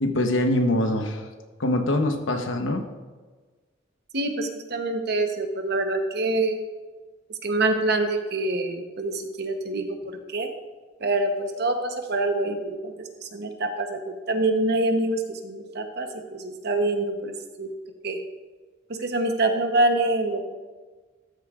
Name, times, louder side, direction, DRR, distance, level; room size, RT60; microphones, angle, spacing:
voice 1, 0.0-1.3 1.6-2.8, left 1 dB, 80° left, 5 dB, 1.0 m, -23 dB
voice 2, 4.1-6.6 7.4-10.5 11.0-17.7 18.0-18.2 18.9-20.5, right 2 dB, 55° right, 5 dB, 1.0 m, -26 dB
13.0 x 8.1 x 2.5 m, 1.4 s
head